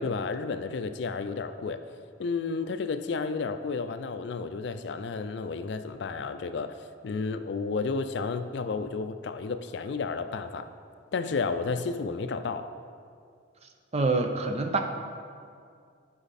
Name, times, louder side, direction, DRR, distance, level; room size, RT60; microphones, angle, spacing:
voice 1, 0.0-1.8 2.2-6.8 7.0-10.7 11.1-12.7, left 4 dB, 65° left, 10 dB, 0.4 m, -32 dB
voice 2, 13.9-14.8, right 3 dB, 35° right, 4 dB, 0.6 m, -26 dB
11.5 x 4.9 x 4.1 m, 2.2 s
head